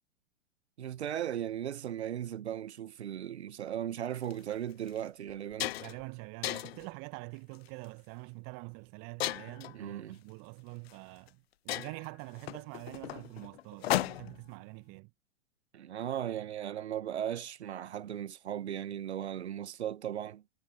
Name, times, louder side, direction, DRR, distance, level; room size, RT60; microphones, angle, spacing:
voice 1, 0.8-5.7 9.7-10.2 15.7-20.4, right 10 dB, 65° right, 1.4 m, -37 dB
sound 1, 4.2-4.3 4.9-5.0 5.3-6.0 6.4-6.9 7.6-7.9 9.2-9.7 10.9-11.0 11.3-11.4 11.7-14.5, left 14 dB, 55° left, 0.5 m, -35 dB
voice 2, 5.8-15.1, right 37 dB, 35° right, 1.4 m, -45 dB
figure-of-eight pair, 100°, 36 cm